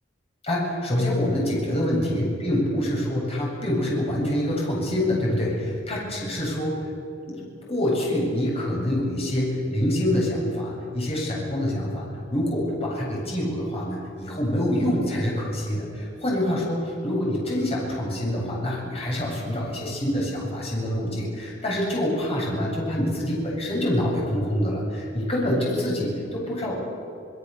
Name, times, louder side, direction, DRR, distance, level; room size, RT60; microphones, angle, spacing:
voice 1, 0.4-6.8 7.3-26.8, left 1 dB, 35° left, -3 dB, 7.9 m, -26 dB
26.0 x 22.0 x 7.1 m, 2.5 s
head